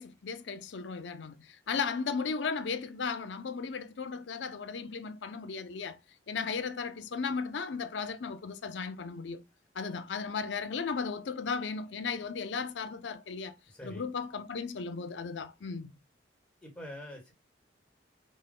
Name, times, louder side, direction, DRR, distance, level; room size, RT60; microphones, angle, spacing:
voice 1, 0.0-6.0 6.3-9.4 9.7-13.6 13.8-15.9, left 5 dB, 75° left, 0.5 m, -35 dB
voice 2, 13.7-14.0 16.6-17.3, left 1 dB, 15° left, 1.2 m, -44 dB
5.2 x 2.2 x 3.5 m
head